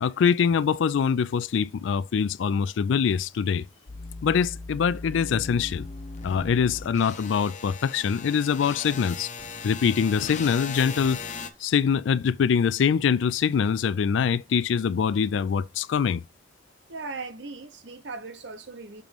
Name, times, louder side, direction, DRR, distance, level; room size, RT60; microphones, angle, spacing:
voice 1, 0.0-3.6 4.2-5.8 6.2-9.3 9.6-11.3 11.6-16.2, left 6 dB, 85° left, 0.3 m, -24 dB
sound 1, 3.9-11.5, left 4 dB, 40° left, 0.7 m, -38 dB
voice 2, 16.9-19.0, right 3 dB, 70° right, 0.8 m, -38 dB
6.8 x 3.1 x 5.1 m
head